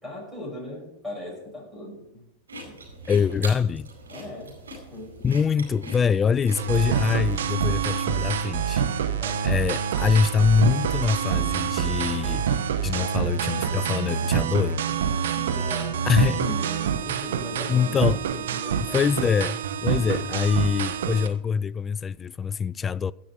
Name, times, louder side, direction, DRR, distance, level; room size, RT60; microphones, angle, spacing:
voice 1, 0.0-2.3 2.7-2.8 4.1-5.2 7.7-7.8 9.2-9.5 12.9-13.3 14.9-19.0, left 1 dB, 5° right, 6.2 m, -39 dB
sound 1, 2.5-7.5, right 2 dB, 90° right, 4.7 m, -42 dB
voice 2, 3.1-3.9 5.2-8.8 9.4-12.5 12.8-14.8 16.1-16.4 17.7-18.2 18.9-23.1, left 6 dB, 25° left, 0.4 m, -24 dB
sound 2, 6.6-21.3, right 8 dB, 75° right, 1.1 m, -26 dB
16.0 x 6.1 x 6.9 m
hypercardioid pair, 95°, 0 cm